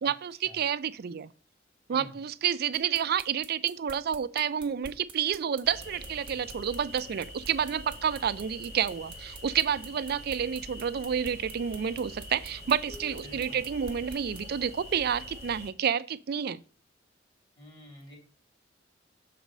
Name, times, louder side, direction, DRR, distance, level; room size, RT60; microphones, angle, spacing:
voice 1, 0.0-1.3 1.9-16.6, right 8 dB, 55° right, 0.4 m, -29 dB
sound 1, 2.7-14.4, right 4 dB, 30° right, 1.2 m, -48 dB
sound 2, 5.6-15.7, left 1 dB, 55° left, 2.5 m, -45 dB
voice 2, 13.2-13.6 17.6-18.2, equal, 25° left, 2.8 m, -49 dB
6.8 x 4.0 x 6.2 m
head